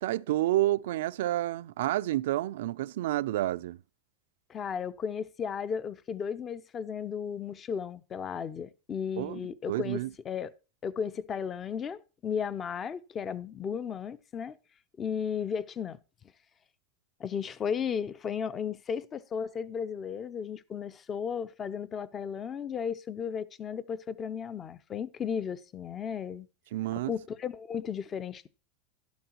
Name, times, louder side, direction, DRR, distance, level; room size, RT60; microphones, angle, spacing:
voice 1, 0.0-3.8 9.2-9.4 9.7-10.1 26.7-27.1, right 15 dB, 75° right, 0.4 m, -29 dB
voice 2, 4.5-10.5 10.8-14.6 15.0-16.0 17.2-26.5 27.1-28.5, left 7 dB, 25° left, 0.6 m, -35 dB
12.0 x 11.5 x 3.0 m
supercardioid pair, 145°, 0 cm